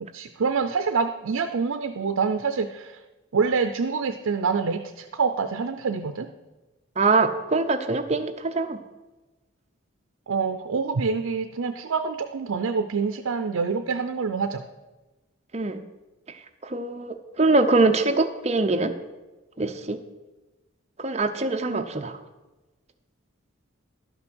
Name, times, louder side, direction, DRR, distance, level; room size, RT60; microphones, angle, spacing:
voice 1, 0.0-3.0 3.3-6.3 10.3-14.6 21.7-21.8, right 5 dB, 80° right, 7 dB, 0.5 m, -26 dB
voice 2, 7.0-8.8 15.5-15.8 16.6-18.9 19.6-20.0 21.0-22.2, right 3 dB, 30° right, 7 dB, 0.6 m, -23 dB
11.5 x 6.1 x 6.1 m, 1.1 s
head